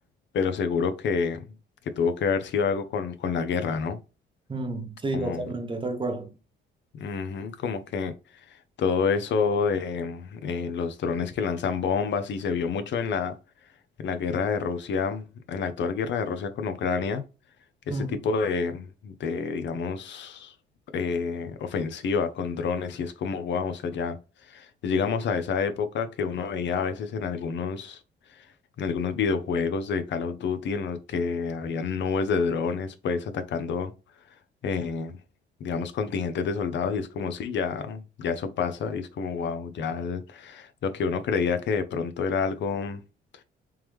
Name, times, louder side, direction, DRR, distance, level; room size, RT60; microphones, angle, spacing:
voice 1, 0.3-1.4 1.9-4.0 5.1-5.5 6.9-8.1 8.8-13.4 14.0-17.2 17.9-20.5 20.9-24.2 24.5-28.0 28.4-28.5 28.8-33.9 34.6-35.2 35.6-43.0, left 5 dB, 65° left, 0.6 m, -28 dB
voice 2, 4.5-6.3 17.9-18.2, right 2 dB, 25° right, 0.9 m, -30 dB
3.5 x 3.1 x 3.1 m
cardioid pair, 90°, 20 cm